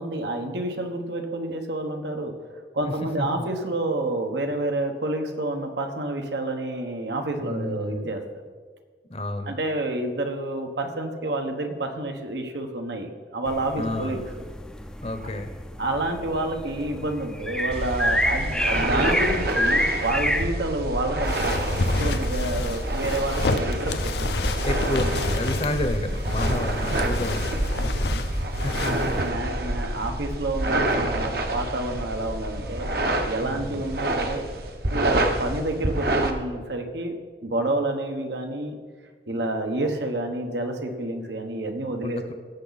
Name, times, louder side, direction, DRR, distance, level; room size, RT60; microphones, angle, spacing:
voice 1, 0.0-2.3 2.7-8.2 9.5-14.2 15.8-24.4 27.7-28.1 28.8-32.9 33.3-34.5 34.9-37.1 37.4-38.8 39.3-42.2, right 2 dB, 80° right, 4 dB, 1.3 m, -29 dB
voice 2, 3.2-3.5 7.4-8.1 9.1-9.5 13.8-14.2 15.0-15.5 24.6-28.1 28.6-29.5 33.4-33.8 42.0-42.3, left 1 dB, 35° left, 7 dB, 0.8 m, -31 dB
sound 1, 13.5-20.4, equal, 5° left, 0.5 m, -28 dB
sound 2, 17.7-36.3, right 1 dB, 60° right, 1.0 m, -27 dB
sound 3, 21.2-29.3, left 3 dB, 70° left, 0.7 m, -29 dB
17.5 x 7.1 x 4.1 m, 1.5 s
head